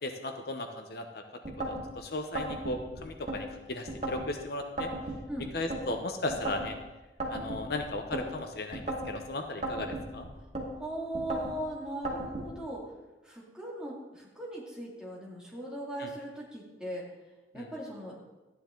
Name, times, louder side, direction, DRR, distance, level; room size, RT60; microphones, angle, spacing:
voice 1, 0.0-1.2 1.7-4.9 5.5-6.7 7.3-10.3 16.0-16.1 17.6-17.7, left 2 dB, 65° left, 5 dB, 0.9 m, -36 dB
sound 1, 1.4-1.9 2.4-3.4 3.9-4.3 4.8-5.8 6.3-6.7 7.2-8.3 8.7-9.1 9.6-10.7 11.1-11.6 12.1-12.5, right 1 dB, 40° right, 2.3 m, -35 dB
voice 2, 10.8-12.8 13.2-17.1 17.5-18.1, right 1 dB, 5° right, -5 dB, 2.5 m, -39 dB
13.5 x 9.9 x 3.9 m, 1.1 s
head